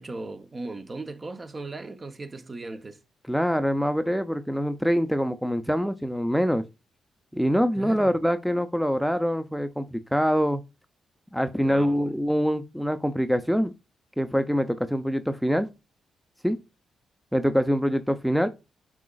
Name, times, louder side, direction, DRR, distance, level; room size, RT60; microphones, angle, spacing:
voice 1, 0.0-3.0 7.7-8.2 11.6-12.1, right 3 dB, 35° right, 0.8 m, -37 dB
voice 2, 3.3-6.7 7.3-10.6 11.3-13.7 14.2-15.7 16.4-16.6 17.3-18.5, equal, ahead, 0.6 m, -24 dB
6.1 x 3.8 x 2.3 m
supercardioid pair, 55°, 0 cm